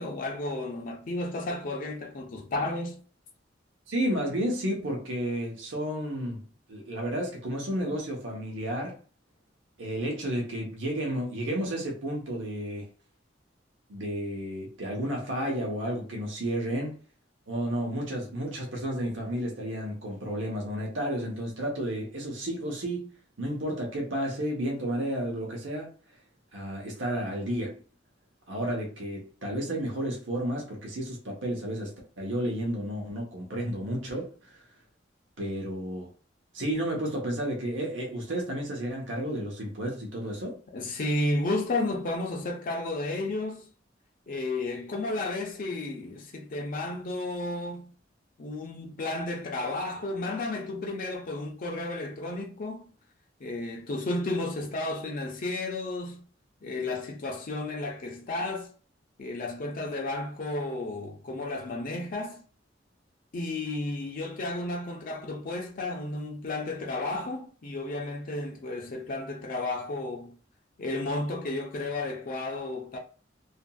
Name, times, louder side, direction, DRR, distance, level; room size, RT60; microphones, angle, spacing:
voice 1, 0.0-3.0 40.7-43.7 44.3-47.9 48.4-52.9 53.4-56.2 56.6-58.7 59.2-62.4 63.3-70.4 70.8-73.0, left 2 dB, 45° left, 0.5 m, -32 dB
voice 2, 3.9-9.0 9.8-12.9 13.9-16.9 17.5-23.1 23.4-25.9 26.5-27.8 28.5-34.6 35.4-36.1 36.5-40.6, right 1 dB, 85° right, 0.9 m, -32 dB
2.8 x 2.5 x 2.3 m
head